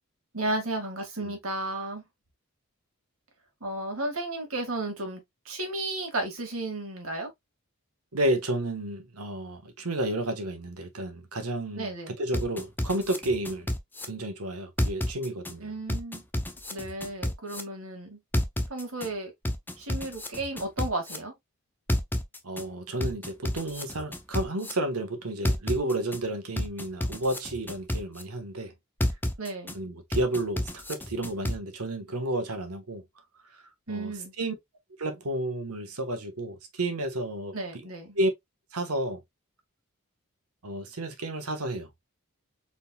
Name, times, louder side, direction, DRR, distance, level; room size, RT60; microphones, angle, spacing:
voice 1, 0.3-2.0 3.6-7.3 11.8-12.2 15.6-16.2 16.7-18.2 18.7-19.3 19.8-21.3 29.4-29.8 33.9-34.3 37.5-38.2, right 2 dB, 65° right, 1.9 m, -33 dB
voice 2, 8.1-11.9 12.2-13.7 14.0-15.7 22.4-28.7 29.7-33.0 33.9-34.1 34.4-34.5 35.0-37.5 38.2-38.3 38.7-39.2 40.6-41.9, right 1 dB, 90° right, 1.3 m, -31 dB
sound 1, 12.3-14.1 14.8-15.5 15.9-17.6 18.3-19.1 19.4-21.2 21.9-22.6 23.0-24.7 25.4-26.2 26.6-28.2 29.0-29.7 30.1-31.6, left 1 dB, 10° left, 0.6 m, -29 dB
4.3 x 3.9 x 2.3 m
head